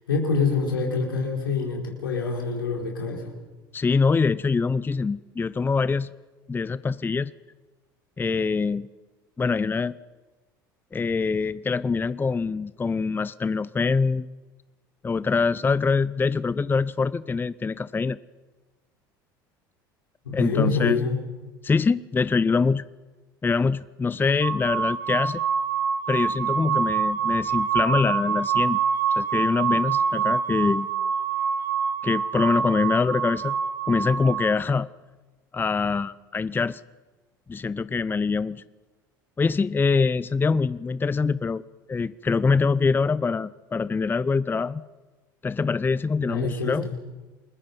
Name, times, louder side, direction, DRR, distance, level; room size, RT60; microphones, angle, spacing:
voice 1, 0.1-3.3 20.2-21.2 46.3-46.9, left 4 dB, 85° left, 1 dB, 4.7 m, -26 dB
voice 2, 3.7-6.1 6.5-7.3 8.2-8.9 9.4-9.9 10.9-14.3 15.0-18.2 20.3-21.0 21.6-22.8 23.4-25.4 26.1-28.8 29.2-30.9 32.0-33.5 33.9-34.9 35.5-36.8 37.5-38.6 39.4-41.6 41.9-44.8 45.4-46.9, left 4 dB, 20° left, 18 dB, 0.6 m, -24 dB
sound 1, 24.4-34.5, right 7 dB, 85° right, 3.9 m, -26 dB
29.5 x 21.5 x 5.5 m, 1.2 s
hypercardioid pair, 75°, 11 cm